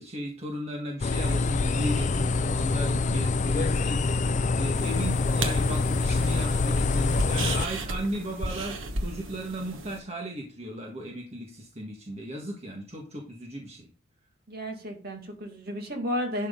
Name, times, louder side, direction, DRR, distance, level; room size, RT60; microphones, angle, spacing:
voice 1, 0.0-13.9, right 1 dB, 30° right, 0 dB, 1.6 m, -36 dB
sound 1, 1.0-7.7, left 3 dB, 35° left, 0.4 m, -25 dB
sound 2, 4.8-10.0, right 2 dB, 80° right, 1.3 m, -35 dB
voice 2, 14.5-16.5, equal, 50° right, 3 dB, 2.2 m, -32 dB
11.0 x 6.3 x 3.8 m, 0.37 s
head